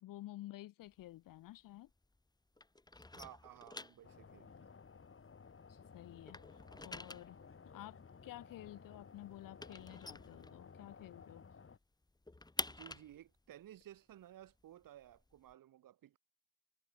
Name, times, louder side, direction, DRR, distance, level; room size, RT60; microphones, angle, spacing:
voice 1, 0.0-1.9 5.7-6.4 6.8-7.4 7.7-11.4, left 15 dB, 50° left, 1.2 m, -52 dB
sound 1, 0.8-2.3 2.5-5.8 6.1-11.1 11.4-11.5 11.8-15.5, left 2 dB, 10° left, 1.4 m, -48 dB
voice 2, 3.1-4.7 12.7-16.2, right 12 dB, 50° right, 2.5 m, -56 dB
sound 2, 4.0-11.8, left 5 dB, 30° left, 3.5 m, -57 dB
figure-of-eight pair, 45°, 41 cm